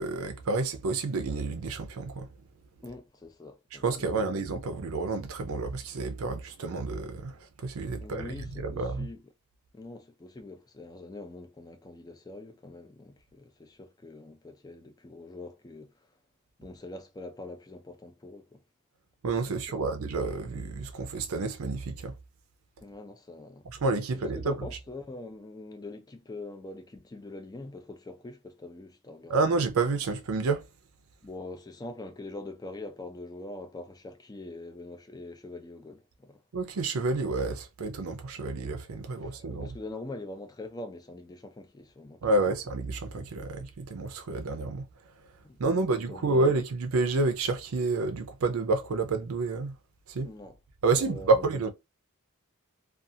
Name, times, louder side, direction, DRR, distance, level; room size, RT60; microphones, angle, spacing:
voice 1, 0.0-2.3 3.8-7.3 7.6-9.1 19.2-22.1 23.8-24.5 29.3-30.6 36.5-39.7 42.2-44.8 45.6-49.7 50.1-50.3 50.8-51.7, right 3 dB, 75° right, 0.5 m, -29 dB
voice 2, 2.8-4.3 8.0-9.2 9.7-15.9 16.6-18.6 19.4-19.9 22.8-23.7 24.1-29.5 31.2-36.4 39.2-42.2 45.4-46.4 50.2-50.6 51.0-51.4, left 2 dB, 15° left, 0.3 m, -44 dB
2.4 x 2.4 x 2.7 m
head